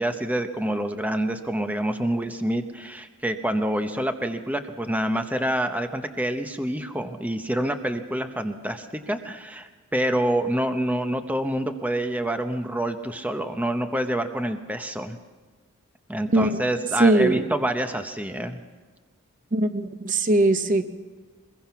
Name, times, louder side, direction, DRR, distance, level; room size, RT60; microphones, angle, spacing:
voice 1, 0.0-15.2 16.1-18.6, right 1 dB, 5° right, 6 dB, 0.8 m, -27 dB
voice 2, 17.0-17.5 19.5-20.8, right 2 dB, 35° right, 9 dB, 0.9 m, -20 dB
23.0 x 21.5 x 5.9 m, 1.3 s
head